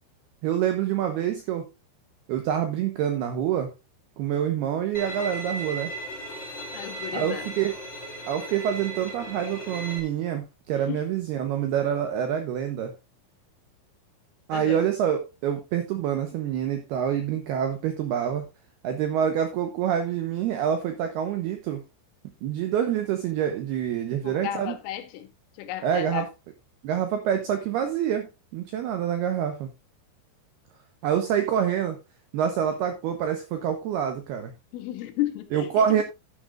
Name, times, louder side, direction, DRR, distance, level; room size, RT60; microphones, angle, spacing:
voice 1, 0.4-1.7 2.3-3.7 4.2-5.9 7.1-7.7 8.3-12.9 14.5-18.5 18.8-21.8 22.4-24.7 25.8-26.3 26.8-29.7 31.0-32.0 32.3-34.5 35.5-36.0, right 9 dB, 90° right, 2.3 m, -26 dB
Bowed string instrument, 4.9-10.0, right 2 dB, 50° left, 0.8 m, -36 dB
voice 2, 6.7-7.5 10.9-11.1 14.5-14.8 24.1-25.3 25.6-26.3 34.7-36.0, left 13 dB, 80° left, 3.6 m, -33 dB
12.0 x 9.9 x 2.4 m
omnidirectional pair, 5.9 m